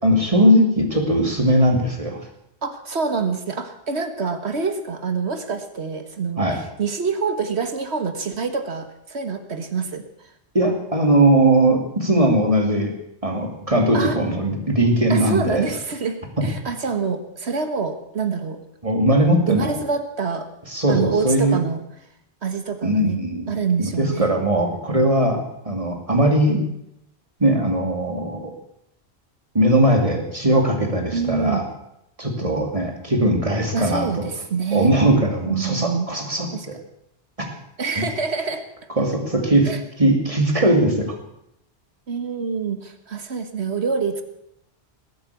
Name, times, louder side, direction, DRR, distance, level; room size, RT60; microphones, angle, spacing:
voice 1, 0.0-2.2 6.4-6.6 10.5-12.9 13.2-15.7 16.4-16.5 18.8-19.8 20.7-21.6 22.8-23.5 23.8-26.6 27.4-28.5 29.5-31.6 32.2-34.3 34.7-36.8 38.0-38.1 39.0-39.7 40.0-41.1, right 1 dB, 30° right, 3 dB, 2.9 m, -19 dB
voice 2, 2.6-10.1 13.9-14.2 15.1-18.6 19.5-20.5 20.9-21.8 22.4-23.2 23.5-24.4 31.1-31.6 33.7-34.9 35.5-36.1 36.5-36.7 37.8-38.6 39.6-39.8 42.1-44.2, right 5 dB, 80° right, 8 dB, 1.8 m, -26 dB
20.0 x 8.5 x 8.4 m, 0.79 s
omnidirectional pair, 1.1 m